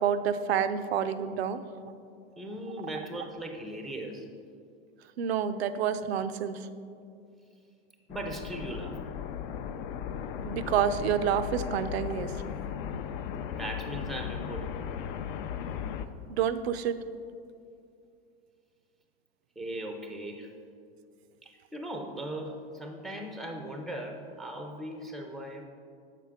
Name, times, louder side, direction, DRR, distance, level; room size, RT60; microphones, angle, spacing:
voice 1, 0.0-1.6 5.2-6.6 10.4-12.3 16.3-17.0, right 8 dB, 85° right, 12 dB, 0.5 m, -28 dB
voice 2, 2.4-4.3 8.1-9.0 13.3-14.8 19.6-20.5 21.4-25.7, right 1 dB, ahead, 3 dB, 0.4 m, -38 dB
sound 1, 8.1-16.1, left 8 dB, 55° left, 0.5 m, -36 dB
7.1 x 5.8 x 3.5 m, 2.4 s
hypercardioid pair, 115°, 31 cm